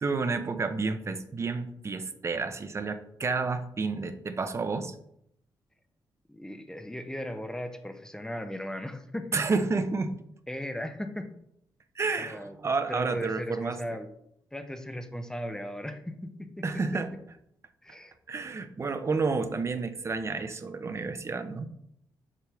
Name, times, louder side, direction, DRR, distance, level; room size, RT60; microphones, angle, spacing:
voice 1, 0.0-4.9 9.3-10.1 12.0-13.8 16.6-17.1 18.3-21.7, right 4 dB, 35° right, 9 dB, 0.7 m, -30 dB
voice 2, 6.3-9.4 10.5-11.3 12.2-12.5 12.9-14.1 14.5-17.0 17.8-18.1, left 1 dB, 5° left, 8 dB, 0.6 m, -37 dB
7.5 x 5.1 x 3.4 m, 0.74 s
cardioid pair, 105°, 8 cm